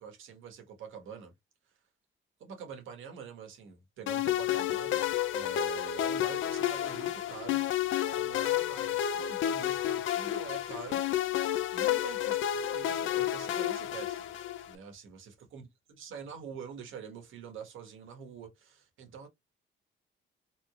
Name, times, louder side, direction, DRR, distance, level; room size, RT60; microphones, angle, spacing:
voice 1, 0.0-1.3 2.4-7.7 8.1-11.0 11.7-12.4 12.7-14.3 14.7-15.7 16.0-19.3, right 6 dB, 80° right, 1.5 m, -46 dB
sound 1, 4.1-14.7, left 11 dB, 80° left, 0.5 m, -31 dB
3.8 x 3.3 x 2.4 m
cardioid pair, 90°, 20 cm